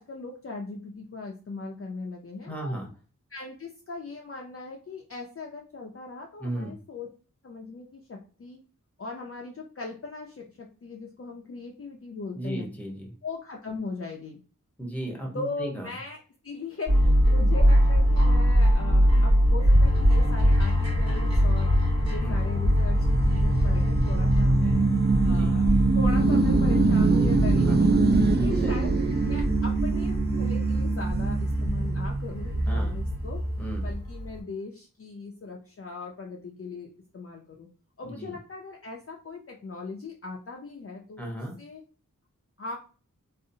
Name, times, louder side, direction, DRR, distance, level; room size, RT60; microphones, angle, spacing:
voice 1, 0.0-2.7 3.3-7.1 7.4-8.6 9.0-12.7 13.2-14.4 15.3-21.7 22.0-24.9 25.2-28.9 29.2-33.4 33.8-37.7 38.0-41.8 42.6-42.8, left 3 dB, 45° left, 0 dB, 0.4 m, -39 dB
voice 2, 2.5-2.9 6.4-6.7 12.3-13.1 14.8-15.9 22.2-22.4 25.2-25.5 27.6-27.8 28.4-28.7 32.7-33.0 33.6-33.9 38.0-38.3 41.2-41.6, right 1 dB, 5° left, 0 dB, 0.9 m, -35 dB
sound 1, 16.9-34.4, equal, 55° right, 1.0 m, -23 dB
sound 2, 19.8-34.0, right 3 dB, 30° right, 0.4 m, -25 dB
2.7 x 2.0 x 2.6 m, 0.37 s
wide cardioid pair, 50°, 33 cm